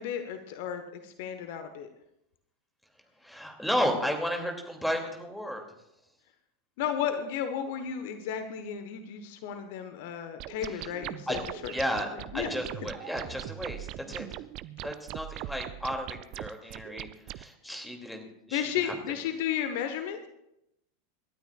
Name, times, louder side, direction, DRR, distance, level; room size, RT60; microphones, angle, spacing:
voice 1, 0.0-1.9 6.8-11.7 12.3-12.5 12.8-12.9 18.5-20.3, left 9 dB, 55° left, 8 dB, 1.2 m, -33 dB
voice 2, 3.2-5.6 10.6-10.9 11.3-11.4 11.7-12.1 12.3-14.3 14.8-18.9, equal, 5° left, 3 dB, 2.6 m, -33 dB
sound 1, 10.4-17.4, right 16 dB, 45° right, 0.5 m, -41 dB
27.5 x 12.5 x 2.4 m, 0.83 s
figure-of-eight pair, 85°, 0 cm